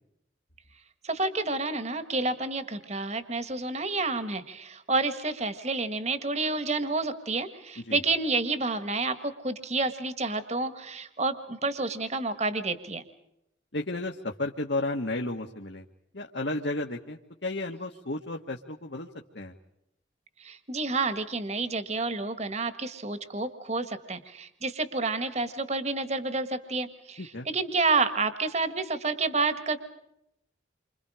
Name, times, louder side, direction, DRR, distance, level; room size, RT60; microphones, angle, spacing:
voice 1, 1.0-13.0 20.4-29.8, right 3 dB, 35° right, 11 dB, 1.6 m, -29 dB
voice 2, 13.7-15.8 16.1-19.1 19.3-19.5 27.2-27.5, left 2 dB, 65° left, 1 dB, 1.6 m, -33 dB
29.5 x 26.0 x 5.0 m, 0.81 s
head